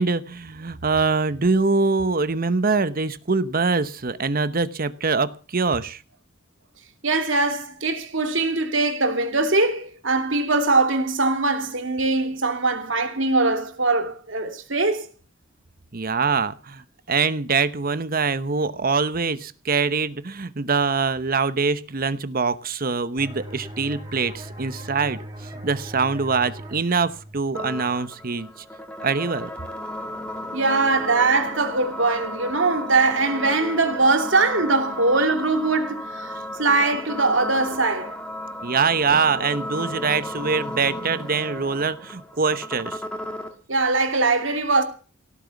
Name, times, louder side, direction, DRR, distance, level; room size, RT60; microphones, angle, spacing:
voice 1, 0.0-6.0 15.9-16.8 17.1-25.2 25.6-28.5 29.0-29.5 38.6-43.0, right 4 dB, 45° right, 0.9 m, -23 dB
voice 2, 7.0-15.1 30.5-38.2 43.7-44.8, right 3 dB, 65° right, 2.7 m, -22 dB
sound 1, 23.2-28.6, right 1 dB, 25° right, 5.5 m, -39 dB
sound 2, 27.5-43.5, left 1 dB, 5° left, 2.7 m, -34 dB
17.5 x 9.2 x 7.1 m
head